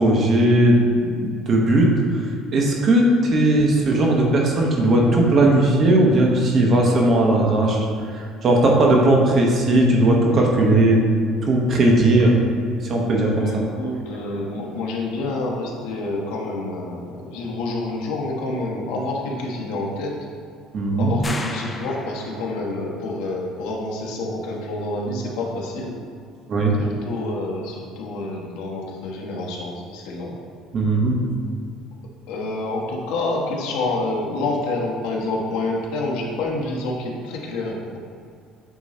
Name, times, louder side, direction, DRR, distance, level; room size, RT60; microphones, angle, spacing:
voice 1, 0.0-1.9 2.5-7.9 8.1-11.0 11.4-12.4 12.8-13.6 20.7-21.2 26.5-26.8 30.7-31.2, right 1 dB, 35° right, -1 dB, 1.0 m, -17 dB
voice 2, 13.3-20.1 21.0-26.0 26.8-30.4 32.3-38.0, left 2 dB, 85° left, -2 dB, 1.2 m, -28 dB
sound 1, 21.2-22.7, left 2 dB, 15° left, 0.4 m, -34 dB
8.3 x 3.0 x 4.2 m, 2.3 s
cardioid pair, 155°, 0 cm